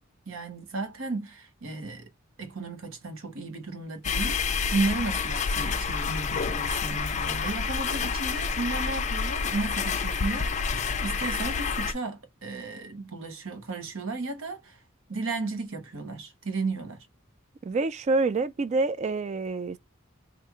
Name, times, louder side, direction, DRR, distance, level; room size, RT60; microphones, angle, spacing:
voice 1, 0.3-2.1 2.4-14.8 15.1-17.1, right 3 dB, 70° right, 0.9 m, -34 dB
sound 1, 4.0-11.9, left 5 dB, 35° left, 0.4 m, -28 dB
voice 2, 17.6-19.8, right 3 dB, 35° right, 0.3 m, -27 dB
3.0 x 2.4 x 3.4 m
head